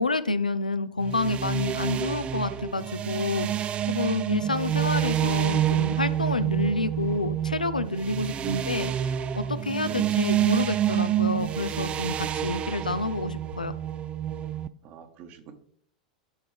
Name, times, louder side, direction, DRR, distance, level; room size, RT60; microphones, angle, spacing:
voice 1, 0.0-13.7, left 2 dB, 90° left, 13 dB, 0.4 m, -29 dB
sound 1, 1.0-14.7, right 11 dB, 30° right, 0.4 m, -28 dB
voice 2, 8.3-8.6 9.8-10.1 12.4-12.6 14.8-15.5, right 9 dB, 45° right, 7 dB, 1.2 m, -40 dB
12.0 x 4.5 x 3.4 m, 0.64 s
figure-of-eight pair, 90°, 4 cm